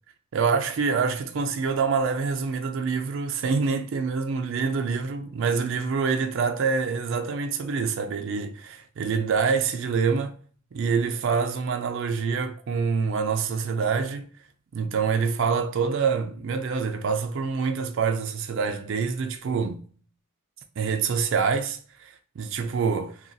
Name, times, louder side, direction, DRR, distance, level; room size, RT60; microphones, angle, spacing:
voice 1, 0.3-10.3 10.7-14.3 14.7-19.8 20.8-23.2, right 5 dB, 60° right, 0.4 m, -26 dB
2.4 x 2.4 x 3.8 m
head